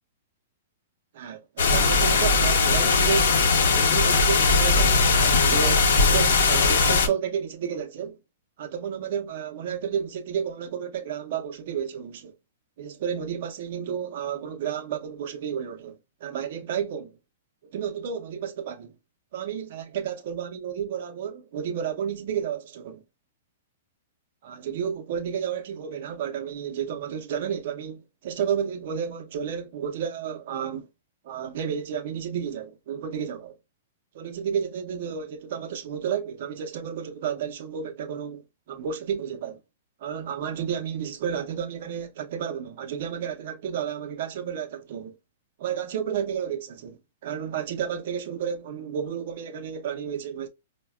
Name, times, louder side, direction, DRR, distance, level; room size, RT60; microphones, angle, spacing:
voice 1, 1.1-3.3 3.6-8.2 8.6-12.3 12.8-17.1 17.7-18.9 19.3-23.0 24.4-30.9 31.2-33.6 34.1-39.6 40.0-45.1 45.6-50.5, right 8 dB, 60° right, 0.6 m, -31 dB
sound 1, 1.6-7.1, left 4 dB, 75° left, 0.7 m, -20 dB
4.6 x 2.2 x 2.3 m
hypercardioid pair, 120°, 0 cm